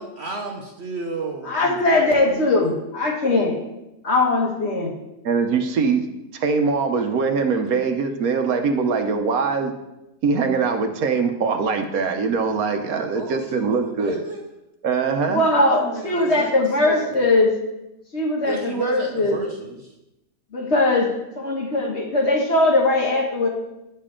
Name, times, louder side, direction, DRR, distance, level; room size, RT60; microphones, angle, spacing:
voice 1, 0.0-2.5 13.1-14.5 15.7-17.2 18.4-20.0, right 4 dB, 50° right, 2 dB, 0.9 m, -33 dB
voice 2, 1.4-3.6 4.0-4.9 15.3-17.5 18.1-19.4 20.5-21.1 21.4-23.5, left 2 dB, 45° left, 1 dB, 1.4 m, -20 dB
voice 3, 5.2-6.1 6.3-9.7 10.2-14.2 14.8-15.4, right 5 dB, 65° right, 6 dB, 1.2 m, -22 dB
10.0 x 6.7 x 3.7 m, 0.93 s
omnidirectional pair, 1.7 m